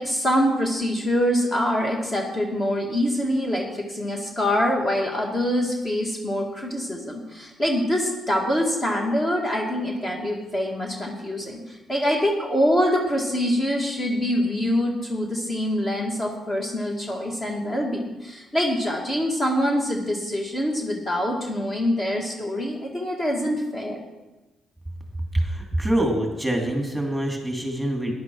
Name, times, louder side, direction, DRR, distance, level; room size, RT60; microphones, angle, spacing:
voice 1, 0.0-24.0, equal, 30° left, -1 dB, 2.2 m, -25 dB
voice 2, 25.3-28.1, right 1 dB, ahead, 1 dB, 2.6 m, -25 dB
13.5 x 10.5 x 4.7 m, 1.1 s
cardioid pair, 90°, 0 cm